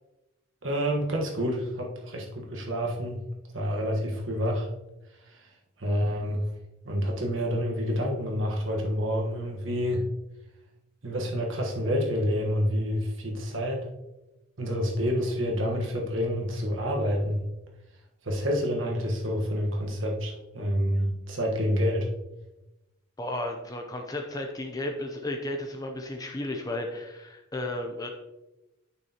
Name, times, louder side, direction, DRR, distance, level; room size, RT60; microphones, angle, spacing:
voice 1, 0.6-3.2 3.5-4.7 5.2-5.5 5.8-6.4 6.8-10.1 11.0-13.9 14.6-17.4 18.2-22.1, equal, 70° right, 0 dB, 1.4 m, -28 dB
voice 2, 23.2-28.1, left 1 dB, 20° left, 3 dB, 0.6 m, -33 dB
9.1 x 6.4 x 2.9 m, 0.99 s
head